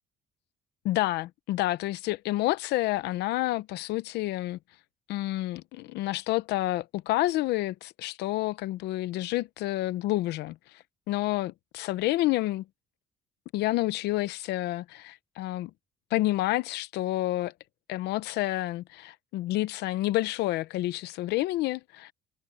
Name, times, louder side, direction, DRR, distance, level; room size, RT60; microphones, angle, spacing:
voice 1, 0.8-4.6 5.1-10.6 11.1-12.6 13.5-15.7 16.1-17.5 17.9-22.1, left 17 dB, 85° left, 0.8 m, -29 dB
cardioid pair, 110°, 17 cm